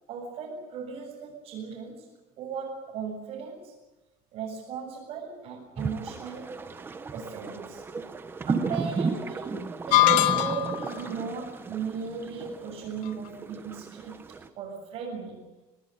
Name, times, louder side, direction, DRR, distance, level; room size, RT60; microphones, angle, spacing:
voice 1, 0.1-3.7 4.3-6.6 7.1-7.8 8.5-15.4, right 6 dB, 55° right, -3 dB, 7.2 m, -37 dB
sound 1, 5.8-14.5, right 4 dB, 20° right, 1.4 m, -34 dB
sound 2, 9.9-10.9, left 17 dB, 75° left, 1.2 m, -21 dB
26.5 x 19.0 x 8.0 m, 1.1 s
cardioid pair, 160°, 12 cm